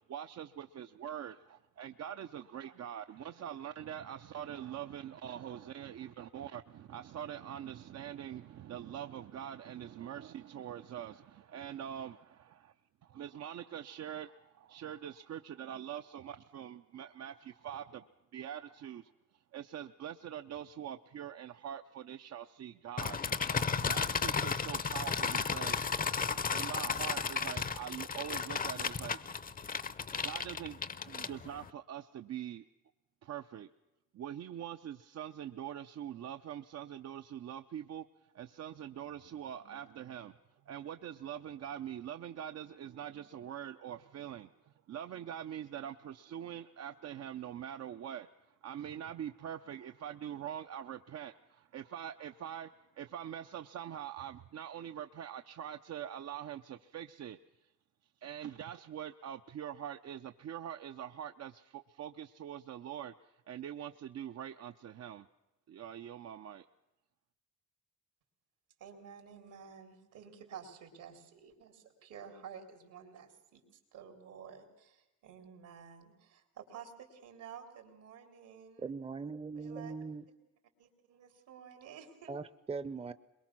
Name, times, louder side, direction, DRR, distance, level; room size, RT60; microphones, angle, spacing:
voice 1, 0.1-12.7 13.0-23.2 23.8-25.8 26.5-29.2 30.1-32.7 33.2-33.7 34.1-38.1 38.3-40.4 40.7-57.4 58.2-65.3 65.7-66.7, right 10 dB, 60° right, 8 dB, 0.7 m, -44 dB
sound 1, 23.0-31.7, left 5 dB, 30° left, 0.7 m, -34 dB
voice 2, 68.8-78.9 79.5-80.0 80.8-82.4, right 7 dB, 85° right, 5 dB, 3.7 m, -52 dB
voice 3, 78.8-80.2 82.3-83.1, right 4 dB, 20° right, 13 dB, 0.7 m, -40 dB
22.5 x 21.5 x 6.1 m, 0.98 s
cardioid pair, 90°, 30 cm